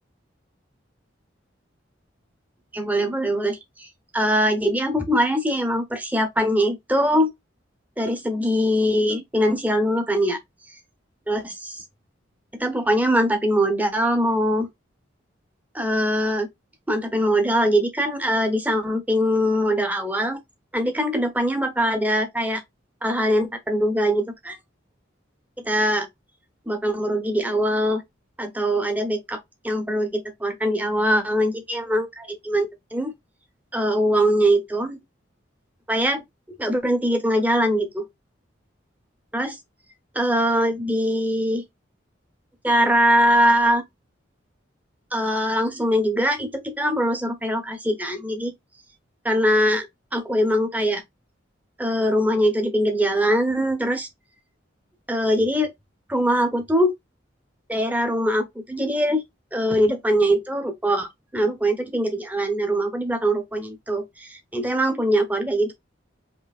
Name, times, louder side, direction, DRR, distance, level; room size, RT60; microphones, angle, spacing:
voice 1, 2.7-7.3 8.0-10.4 11.3-11.8 12.6-14.7 15.7-16.5 16.9-20.4 20.7-22.6 23.0-24.6 25.6-26.1 26.7-28.0 28.4-33.1 33.7-35.0 35.9-36.2 36.6-38.1 39.3-39.6 40.1-41.6 42.6-43.8 45.1-48.5 49.2-49.9 50.1-51.0 51.8-54.1 55.1-55.7 56.1-56.9 57.7-59.2 59.5-65.7, equal, 10° right, 0.9 m, -22 dB
5.2 x 2.8 x 2.4 m
head